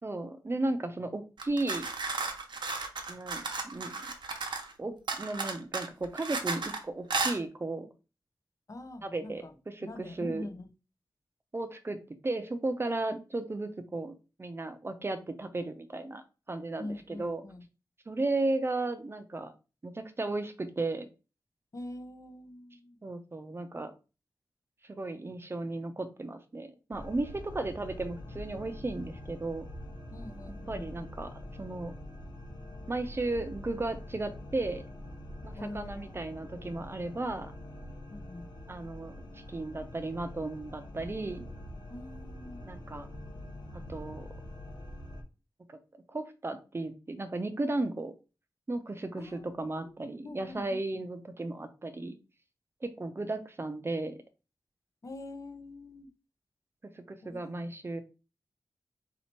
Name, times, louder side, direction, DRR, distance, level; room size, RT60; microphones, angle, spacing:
voice 1, 0.0-1.9 3.1-4.1 4.8-7.9 9.0-10.5 11.5-12.0 12.2-17.4 18.1-19.5 19.8-21.1 23.0-23.9 24.9-29.7 30.7-31.9 32.9-34.8 35.4-37.5 38.7-39.1 39.5-41.4 42.6-43.1 43.9-44.3 45.7-45.8 46.1-48.1 48.7-52.2 52.8-54.2 57.0-58.0, right 2 dB, 30° right, 9 dB, 0.6 m, -35 dB
sound 1, 1.4-4.7 5.1-6.8 7.1-7.4, right 4 dB, 85° right, 0.8 m, -34 dB
voice 2, 8.7-9.5 9.8-10.7 16.8-17.6 21.7-23.0 30.1-30.9 35.6-36.7 38.1-38.5 41.9-42.7 49.2-49.9 50.2-50.8 55.0-56.1 57.2-57.4, left 1 dB, 45° left, 7 dB, 0.7 m, -44 dB
sound 2, 26.9-45.2, left 1 dB, 70° left, 1.0 m, -45 dB
4.1 x 2.9 x 4.4 m, 0.32 s
wide cardioid pair, 100°, 8 cm